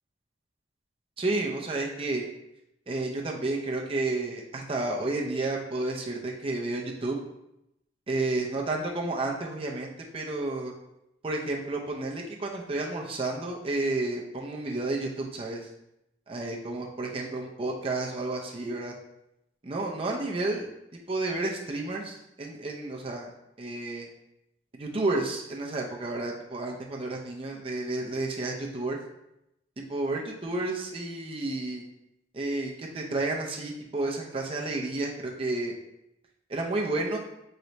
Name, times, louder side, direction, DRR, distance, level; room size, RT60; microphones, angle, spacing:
voice 1, 1.2-2.3 2.9-7.2 8.1-10.7 11.2-15.7 16.3-18.9 19.6-20.7 20.9-23.3 23.6-24.1 24.7-29.0 29.9-31.8 32.3-35.7 36.5-37.2, right 2 dB, 30° right, -1 dB, 0.5 m, -31 dB
3.2 x 2.9 x 3.9 m, 0.85 s
head